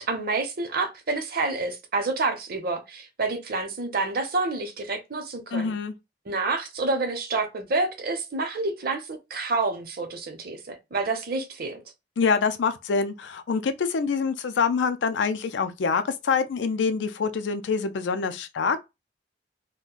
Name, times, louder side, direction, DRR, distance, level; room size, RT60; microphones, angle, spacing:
voice 1, 0.0-5.8 6.3-11.8, right 3 dB, 55° right, 0.7 m, -28 dB
voice 2, 5.5-5.9 12.2-18.8, left 5 dB, 85° left, 0.4 m, -25 dB
2.4 x 2.1 x 3.7 m
head